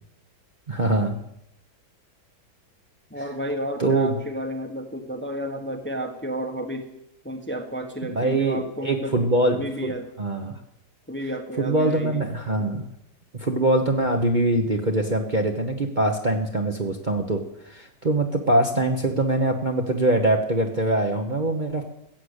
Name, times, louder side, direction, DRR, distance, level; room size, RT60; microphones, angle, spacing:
voice 1, 0.7-1.2 3.8-4.1 8.0-9.9 10.2-10.6 11.6-12.8 13.3-21.8, right 2 dB, 30° right, 2 dB, 1.0 m, -23 dB
voice 2, 3.1-6.9 7.2-10.1 11.1-12.2, equal, 10° left, 4 dB, 1.1 m, -31 dB
15.0 x 8.1 x 8.1 m, 0.81 s
omnidirectional pair, 1.9 m